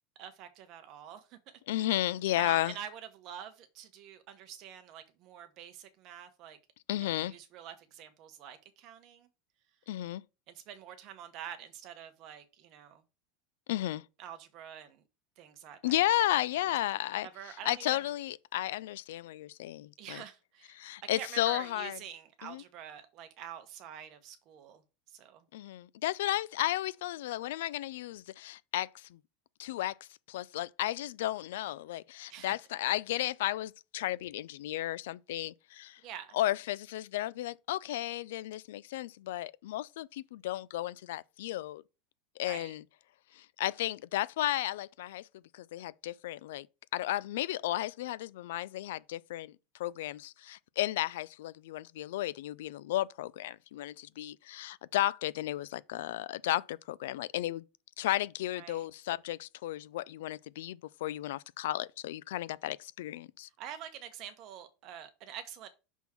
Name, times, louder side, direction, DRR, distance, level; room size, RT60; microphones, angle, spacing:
voice 1, 0.2-1.6 2.4-6.6 7.0-9.3 10.5-13.0 14.2-15.0 15.4-16.2 16.5-16.8 17.2-18.1 20.0-24.8 25.1-25.5 32.3-32.6 36.0-36.4 42.4-42.7 58.5-58.9 63.6-65.7, right 9 dB, 35° right, 1.0 m, -47 dB
voice 2, 1.7-2.7 6.9-7.3 9.9-10.2 13.7-14.0 15.8-17.3 17.7-20.2 20.7-22.0 22.4-22.6 25.5-29.2 29.6-29.9 30.3-36.0 36.3-41.8 42.4-42.8 43.4-45.2 45.5-46.7 46.9-49.5 49.8-57.6 58.0-63.5, left 14 dB, 80° left, 0.3 m, -33 dB
6.1 x 3.6 x 5.8 m
supercardioid pair, 170°, 0 cm